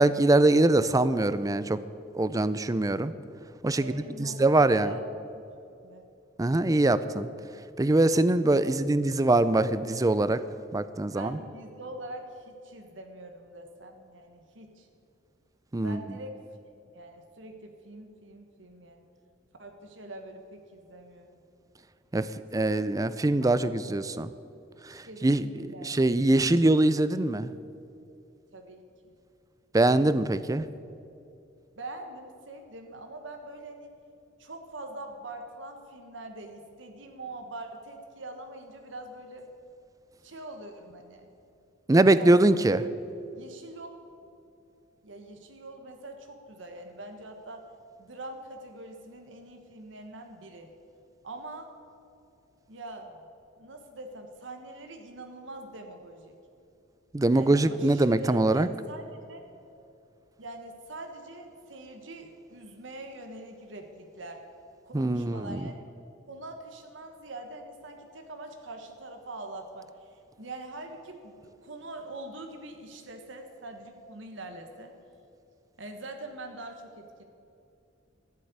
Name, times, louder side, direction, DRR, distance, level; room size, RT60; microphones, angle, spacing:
voice 1, 0.0-1.8 2.1-3.1 3.6-4.9 6.4-7.3 7.8-10.4 10.7-11.4 15.7-16.0 22.1-22.3 22.5-24.3 24.9-27.5 29.7-30.6 41.9-42.9 57.1-58.7 64.9-65.6, right 2 dB, 20° right, 15 dB, 0.4 m, -23 dB
voice 2, 3.8-5.1 5.8-6.1 8.6-8.7 11.1-14.9 15.8-16.4 16.7-19.0 19.6-21.4 22.3-22.9 23.4-23.6 25.0-26.0 28.5-29.1 31.7-33.9 34.4-39.5 40.2-41.3 41.9-42.6 43.3-44.0 45.0-47.7 48.0-50.7 51.2-51.7 52.7-53.2 53.6-56.4 57.3-59.4 60.4-64.4 64.8-65.8 66.3-74.9 75.8-77.2, right 2 dB, 70° right, 5 dB, 1.3 m, -43 dB
12.5 x 7.5 x 9.4 m, 2.6 s
head